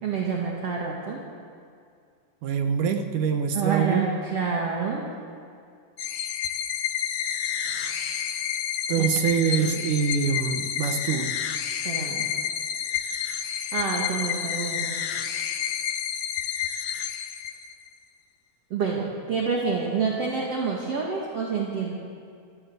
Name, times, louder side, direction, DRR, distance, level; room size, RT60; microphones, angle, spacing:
voice 1, 0.0-1.2 3.5-5.1 9.0-9.8 11.8-12.3 13.7-15.0 18.7-21.9, right 5 dB, 45° right, -1 dB, 2.7 m, -28 dB
voice 2, 2.4-4.1 8.9-11.3, right 6 dB, 65° right, 6 dB, 2.3 m, -25 dB
sound 1, 6.0-17.9, left 9 dB, 90° left, 1.4 m, -30 dB
27.5 x 14.0 x 8.2 m, 2.3 s
omnidirectional pair, 4.5 m